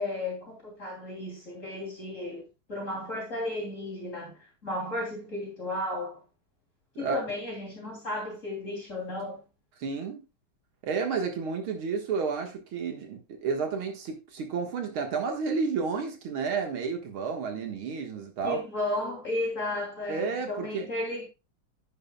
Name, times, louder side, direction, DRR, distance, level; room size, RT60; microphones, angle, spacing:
voice 1, 0.0-2.4 2.7-6.1 7.0-9.4 18.4-21.3, left 1 dB, 35° left, 3.4 m, -34 dB
voice 2, 9.8-10.2 10.8-18.6 20.1-20.9, right 5 dB, 70° right, 2.4 m, -31 dB
10.5 x 9.6 x 2.3 m
omnidirectional pair, 2.4 m